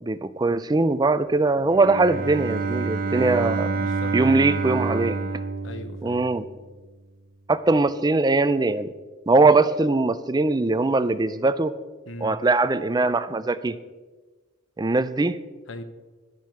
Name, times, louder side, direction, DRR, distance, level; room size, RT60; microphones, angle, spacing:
voice 1, 0.0-3.7 4.1-5.2 6.0-6.4 7.5-8.9 9.3-11.7 12.2-13.7 14.8-15.4, right 3 dB, 20° right, 13 dB, 0.4 m, -21 dB
Bowed string instrument, 1.6-6.5, right 4 dB, 45° right, 0.8 m, -28 dB
voice 2, 3.7-4.6 5.6-6.2 12.1-12.4 15.7-15.8, left 1 dB, 70° left, 9 dB, 0.9 m, -39 dB
11.0 x 7.6 x 5.8 m, 1.3 s
head